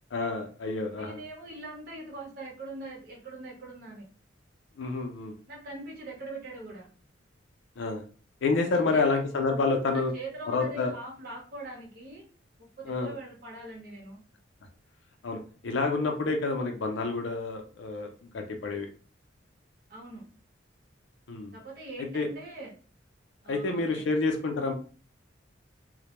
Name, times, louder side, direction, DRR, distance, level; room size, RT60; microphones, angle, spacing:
voice 1, 0.1-1.2 4.8-5.3 7.8-8.0 8.4-10.1 10.5-10.9 12.9-13.1 15.2-18.9 21.3-21.5 22.1-22.3 23.5-24.7, left 3 dB, 70° left, 3 dB, 0.4 m, -28 dB
voice 2, 1.0-4.1 5.5-6.9 8.7-9.1 9.9-12.2 12.6-14.2 19.9-20.3 21.5-22.7 23.4-24.1, right 2 dB, 50° right, -3 dB, 0.8 m, -42 dB
2.1 x 2.1 x 2.9 m, 0.38 s
head